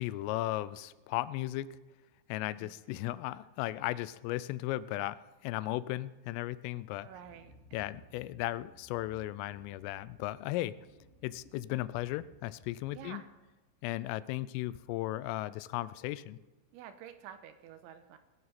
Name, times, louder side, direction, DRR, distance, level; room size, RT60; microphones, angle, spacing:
voice 1, 0.0-1.8 2.3-7.1 7.7-10.7 11.2-13.2 13.8-16.4, left 16 dB, 90° left, 17 dB, 3.2 m, -36 dB
sound 1, 6.9-13.4, right 2 dB, 60° right, 2.8 m, -61 dB
voice 2, 7.0-7.9 12.9-13.3 16.7-18.2, right 9 dB, 80° right, 9 dB, 2.9 m, -50 dB
18.5 x 11.0 x 4.2 m, 1.2 s
omnidirectional pair, 5.7 m